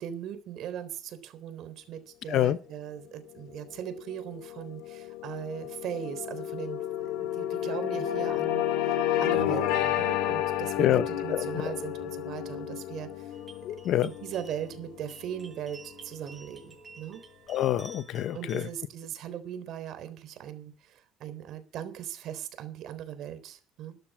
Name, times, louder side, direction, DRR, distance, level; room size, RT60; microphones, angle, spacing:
voice 1, 0.0-8.6 9.2-13.3 14.0-17.2 18.3-24.0, right 10 dB, 65° right, 3.7 m, -39 dB
sound 1, 3.6-16.1, left 11 dB, 85° left, 2.6 m, -31 dB
sound 2, 13.3-18.7, right 4 dB, 20° right, 7.5 m, -52 dB
voice 2, 13.6-14.1 17.5-18.7, left 12 dB, 65° left, 0.8 m, -26 dB
13.0 x 12.0 x 6.2 m
cardioid pair, 105°, 0 cm